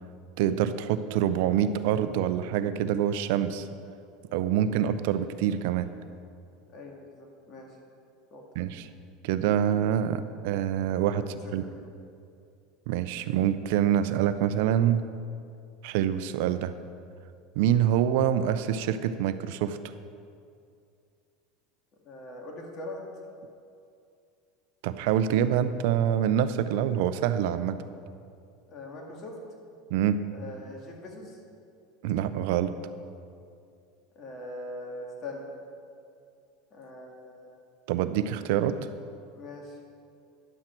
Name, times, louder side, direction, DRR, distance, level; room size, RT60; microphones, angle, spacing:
voice 1, 0.4-3.7 4.3-5.9 8.6-8.9 9.2-11.6 12.9-15.0 15.8-16.8 17.6-19.8 24.8-27.8 29.9-30.2 32.0-32.8 37.9-38.8, right 10 dB, 70° right, 12 dB, 0.5 m, -26 dB
voice 2, 6.7-7.7 8.3-8.4 11.6-11.8 22.1-23.0 28.7-29.4 30.3-31.4 34.2-35.5 36.7-37.4 39.3-39.8, left 1 dB, 40° left, 0 dB, 1.9 m, -41 dB
11.0 x 7.7 x 4.4 m, 2.4 s
hypercardioid pair, 100°, 0 cm